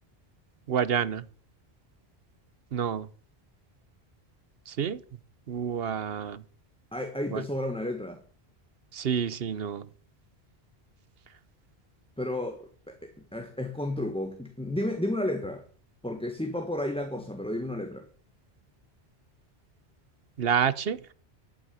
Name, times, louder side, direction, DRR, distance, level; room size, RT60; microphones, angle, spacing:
voice 1, 0.7-1.2 2.7-3.1 4.7-5.0 5.5-6.4 7.3-7.4 8.9-9.9 20.4-21.1, right 7 dB, 65° right, 1.0 m, -28 dB
voice 2, 6.9-8.2 12.2-15.6 16.0-18.1, left 1 dB, 5° left, 1.4 m, -32 dB
11.0 x 9.1 x 8.6 m
omnidirectional pair, 1.1 m